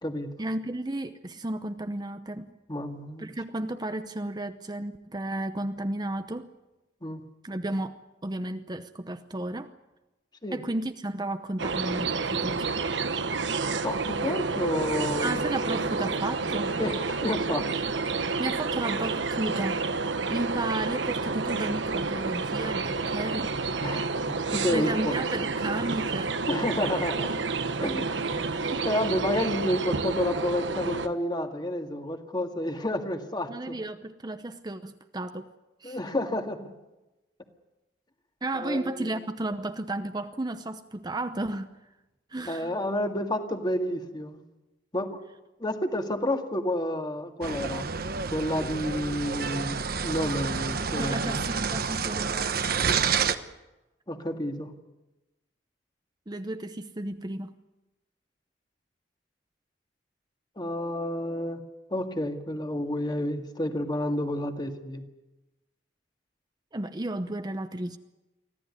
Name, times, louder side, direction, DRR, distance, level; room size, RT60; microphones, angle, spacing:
voice 1, 0.4-2.5 3.2-6.5 7.4-9.7 10.5-12.7 15.2-16.8 18.4-19.8 20.3-23.6 24.7-26.3 28.7-28.8 33.5-35.5 35.8-36.0 38.4-41.8 42.3-42.8 50.9-52.6 56.3-57.5 66.7-68.0, right 1 dB, 25° right, 9 dB, 0.8 m, -33 dB
voice 2, 2.7-3.3 7.0-7.2 10.4-10.6 13.8-15.4 16.8-17.6 23.8-25.1 26.5-27.3 27.8-28.4 28.7-33.8 35.8-36.7 38.6-39.1 42.5-44.4 44.9-45.2 45.6-47.9 48.3-51.4 54.1-54.7 60.6-61.6 61.9-65.0, left 1 dB, 25° left, 5 dB, 1.9 m, -30 dB
sound 1, 11.6-31.1, right 4 dB, 85° right, 1.2 m, -29 dB
sound 2, 47.4-53.3, right 6 dB, 55° right, 1.1 m, -29 dB
25.0 x 15.5 x 9.7 m, 1.0 s
head